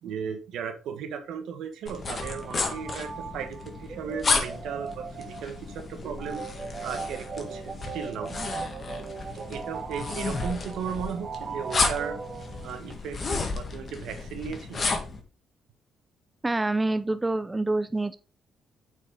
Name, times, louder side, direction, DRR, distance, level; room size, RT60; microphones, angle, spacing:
voice 1, 0.0-6.4 6.8-8.4 9.3-12.2 12.6-14.9, right 7 dB, 80° right, 7 dB, 1.3 m, -36 dB
sound 1, 1.9-15.2, left 3 dB, 40° left, 1.8 m, -32 dB
sound 2, 2.2-12.9, right 5 dB, 40° right, 0.9 m, -39 dB
voice 2, 16.4-18.2, right 2 dB, 15° right, 12 dB, 0.5 m, -26 dB
8.3 x 4.9 x 3.8 m, 0.33 s
cardioid pair, 90°, 0 cm